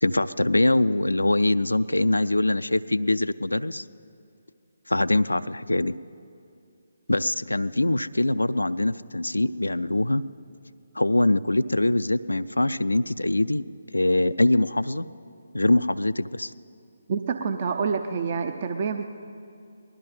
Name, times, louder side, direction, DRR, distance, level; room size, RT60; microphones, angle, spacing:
voice 1, 0.0-3.9 4.9-5.9 7.1-10.2 10.9-13.6 13.9-15.1 15.5-16.5, left 2 dB, 80° left, 13 dB, 0.3 m, -23 dB
voice 2, 17.1-19.0, right 5 dB, 40° right, 7 dB, 0.6 m, -27 dB
19.5 x 12.5 x 5.4 m, 2.4 s
figure-of-eight pair, 145°, 0 cm